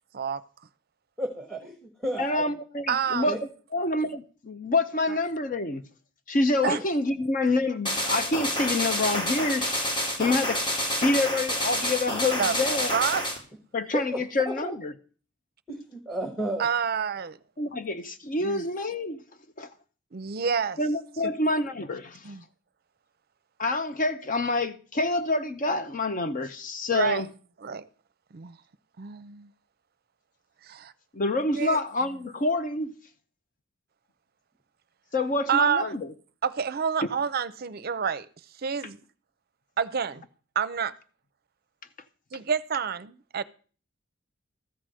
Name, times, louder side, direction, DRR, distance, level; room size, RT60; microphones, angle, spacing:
voice 1, 1.2-2.5 3.2-3.4 13.9-14.0 14.4-14.7 15.7-16.6 27.0-27.1, right 1 dB, ahead, 1.3 m, -32 dB
voice 2, 2.2-3.4 3.7-5.8 6.3-9.9 10.2-10.7 11.0-12.9 13.7-14.9 17.6-19.2 19.6-19.7 20.8-22.3 23.6-27.3 31.1-32.9 35.1-36.1, left 2 dB, 40° left, 0.6 m, -27 dB
voice 3, 2.9-3.3 6.6-6.8 12.4-12.6 12.9-13.2 16.6-17.4 18.4-18.6 20.1-20.8 21.2-21.3 22.2-22.4 26.9-27.2 27.6-27.9 28.3-28.6 29.0-29.5 30.6-30.9 31.6-31.8 35.5-35.9 36.4-38.3 38.6-39.0 39.8-40.2 40.6-40.9 42.3-43.4, right 7 dB, 50° right, 0.5 m, -28 dB
sound 1, 7.8-13.4, equal, 25° left, 1.9 m, -28 dB
13.5 x 5.0 x 7.5 m
head